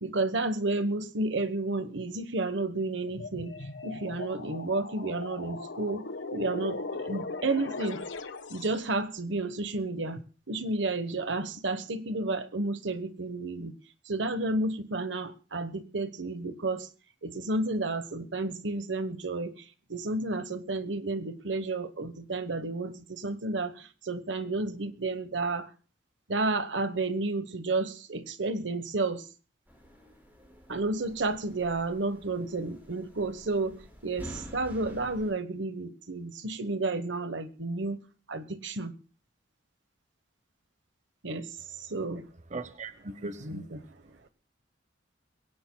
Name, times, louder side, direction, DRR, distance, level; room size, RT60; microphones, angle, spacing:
voice 1, 0.0-3.5 3.8-6.0 6.3-8.0 8.5-10.2 10.5-13.7 14.1-16.9 17.2-19.6 19.9-25.7 26.3-29.2 30.7-33.8 34.0-38.0 38.3-38.9 41.2-41.5 41.9-42.2 43.4-43.8, right 2 dB, 75° right, 12 dB, 1.2 m, -31 dB
sound 1, 3.1-8.9, left 3 dB, 85° left, 1.2 m, -38 dB
sound 2, 29.7-35.3, equal, 10° right, 5.6 m, -48 dB
voice 2, 42.5-43.6, right 2 dB, 40° right, 11 dB, 0.9 m, -38 dB
22.5 x 17.0 x 2.3 m, 0.36 s
head